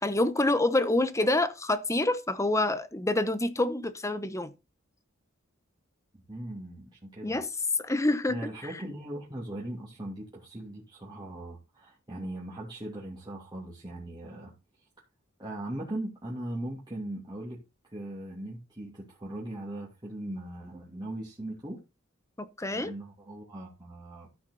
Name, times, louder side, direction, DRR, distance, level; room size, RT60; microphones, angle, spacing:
voice 1, 0.0-4.5 7.2-7.5 7.8-8.7 22.4-22.9, left 2 dB, 15° left, 1.0 m, -27 dB
voice 2, 6.3-7.4 8.3-14.5 15.4-21.8 22.7-24.3, right 1 dB, 20° right, 2.9 m, -39 dB
14.0 x 6.1 x 4.2 m
head